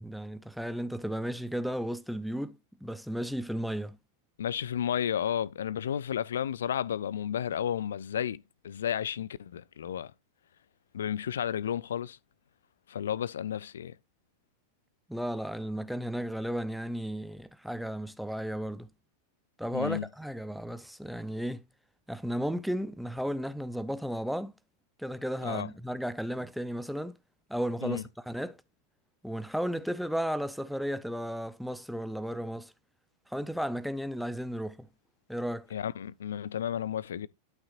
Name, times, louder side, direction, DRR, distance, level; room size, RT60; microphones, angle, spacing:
voice 1, 0.0-4.0 15.1-18.9 19.6-21.6 22.1-24.5 25.0-27.2 27.5-28.6 29.2-32.7 33.3-34.9 35.3-35.7, equal, ahead, 0.6 m, -34 dB
voice 2, 4.4-10.1 10.9-12.2 12.9-14.0 19.7-20.1 25.4-25.7 27.8-28.0 35.7-37.3, left 9 dB, 65° left, 0.4 m, -32 dB
11.5 x 5.7 x 2.5 m
figure-of-eight pair, 90°, 0 cm